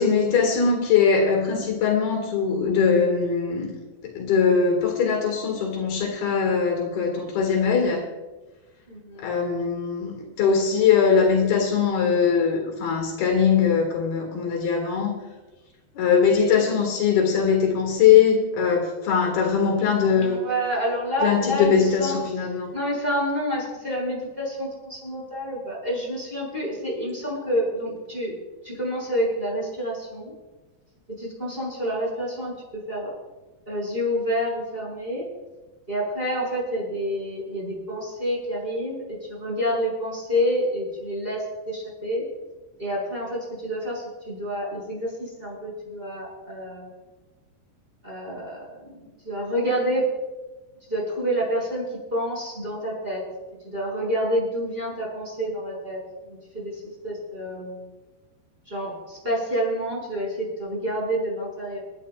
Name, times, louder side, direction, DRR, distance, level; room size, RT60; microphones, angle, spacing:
voice 1, 0.0-3.8 4.0-8.1 9.2-15.2 16.0-20.4 21.2-22.7, left 6 dB, 70° left, 2 dB, 3.9 m, -21 dB
voice 2, 8.9-9.3 20.0-22.2 22.7-28.4 28.6-30.3 31.1-33.1 33.7-35.2 35.9-42.2 42.8-46.9 48.0-50.0 50.9-51.8 52.1-53.3 53.6-57.9 58.7-61.8, equal, 15° right, -4 dB, 5.8 m, -28 dB
30.0 x 11.0 x 2.4 m, 1.2 s
omnidirectional pair, 4.6 m